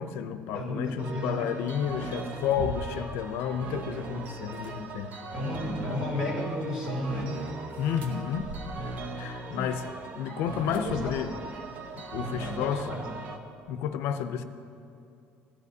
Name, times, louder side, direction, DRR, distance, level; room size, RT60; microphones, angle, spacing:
voice 1, 0.0-5.1 7.8-8.5 9.1-9.8 10.1-11.3 12.0-12.9 13.7-14.4, left 8 dB, 75° left, 9 dB, 0.4 m, -31 dB
voice 2, 0.5-1.5 5.3-7.5 9.5-9.9 10.7-11.1 12.1-13.0, left 1 dB, 20° right, -2 dB, 2.7 m, -33 dB
sound 1, 1.0-13.4, right 3 dB, 40° right, 0.6 m, -39 dB
sound 2, 2.2-3.1 4.4-4.7 7.7-9.0 10.7-11.6, right 1 dB, 60° right, 1.0 m, -40 dB
16.0 x 10.5 x 2.7 m, 2.5 s
cardioid pair, 175°, 4 cm